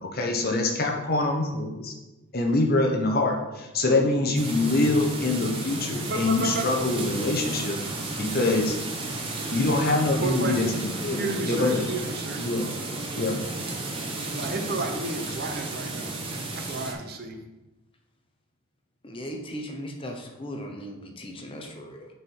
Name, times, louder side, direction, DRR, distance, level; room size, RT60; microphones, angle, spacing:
voice 1, 0.0-1.9 2.3-7.8 8.2-8.8 9.5-11.9 12.4-12.7 13.2-13.4, left 2 dB, 45° left, 2 dB, 1.1 m, -24 dB
sound 1, 4.3-16.9, right 2 dB, 25° right, 1.1 m, -33 dB
voice 2, 6.1-6.6 10.2-10.7 11.2-12.4 14.3-16.2 16.5-17.4, right 2 dB, 45° right, 5 dB, 0.8 m, -32 dB
voice 3, 19.0-22.1, equal, 25° left, 2 dB, 0.8 m, -37 dB
6.8 x 4.5 x 5.5 m, 1.0 s
head